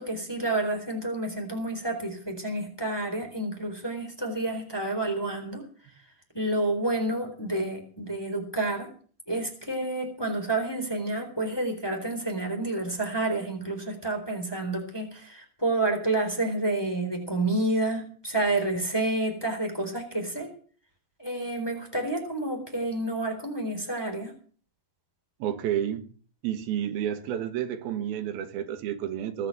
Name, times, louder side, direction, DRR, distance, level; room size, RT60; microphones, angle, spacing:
voice 1, 0.0-5.6 6.3-8.9 9.3-20.5 21.2-24.3, right 2 dB, 5° left, 3.5 m, -29 dB
voice 2, 25.4-26.1 26.4-29.5, right 10 dB, 80° right, 3.1 m, -30 dB
20.5 x 7.5 x 7.7 m
omnidirectional pair, 4.3 m